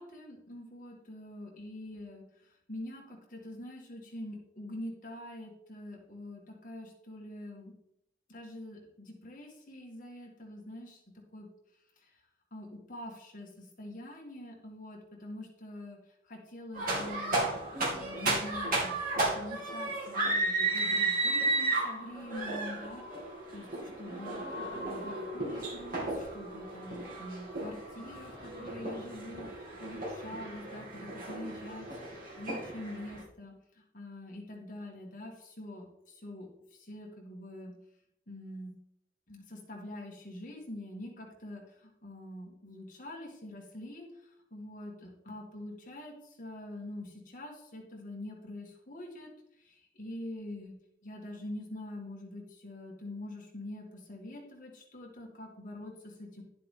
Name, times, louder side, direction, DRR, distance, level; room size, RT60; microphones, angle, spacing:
voice 1, 0.0-2.2 2.7-7.7 8.3-11.0 11.3-11.5 12.0-12.1 12.5-16.0 16.2-23.1 23.5-37.7 38.3-38.7 39.3-49.3 49.6-50.7 51.0-56.4, left 1 dB, 45° left, 0 dB, 2.0 m, -45 dB
sound 1, 16.7-33.2, right 2 dB, 45° right, 2.7 m, -34 dB
11.5 x 7.5 x 3.8 m, 0.79 s
head